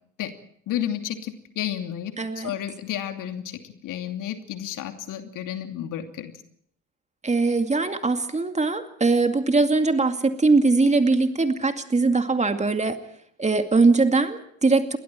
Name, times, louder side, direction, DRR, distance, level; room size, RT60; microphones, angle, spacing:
voice 1, 0.7-6.3, left 11 dB, 50° left, 6 dB, 2.8 m, -32 dB
voice 2, 2.2-2.5 7.2-13.0 13.4-15.0, right 3 dB, 15° right, 7 dB, 2.3 m, -21 dB
29.5 x 23.0 x 4.5 m, 0.66 s
figure-of-eight pair, 60°, 40 cm